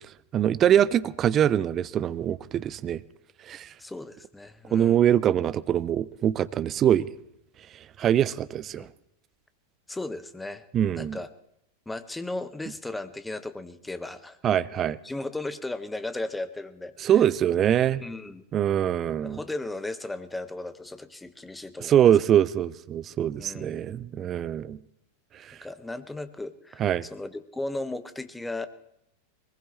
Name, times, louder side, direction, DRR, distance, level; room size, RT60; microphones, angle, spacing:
voice 1, 0.3-3.0 3.4-3.7 4.7-7.1 8.0-8.9 10.7-11.2 14.4-15.0 17.0-18.0 18.5-19.4 21.8-24.8 25.3-25.6 26.8-27.1, right 10 dB, 30° right, 0.5 m, -23 dB
voice 2, 3.8-5.0 8.7-8.9 9.9-10.6 10.9-11.3 11.9-14.4 15.0-16.9 18.0-18.4 19.2-22.0 23.4-23.8 25.6-26.8 27.1-28.7, left 2 dB, 5° left, 0.9 m, -36 dB
22.0 x 20.0 x 3.2 m
figure-of-eight pair, 90°, 0 cm